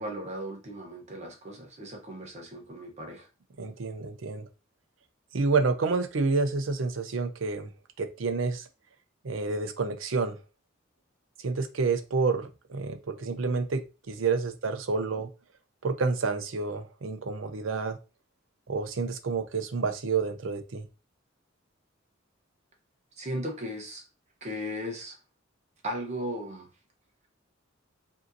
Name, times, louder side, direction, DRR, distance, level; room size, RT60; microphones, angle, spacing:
voice 1, 0.0-3.3 23.2-24.0 24.4-25.2 25.8-26.7, equal, 35° right, 2 dB, 0.9 m, -36 dB
voice 2, 3.6-4.5 5.3-7.7 8.0-8.6 9.2-10.4 11.4-15.3 15.8-18.0 18.7-20.9, right 4 dB, 70° right, 8 dB, 0.6 m, -29 dB
5.0 x 2.8 x 2.6 m, 0.30 s
head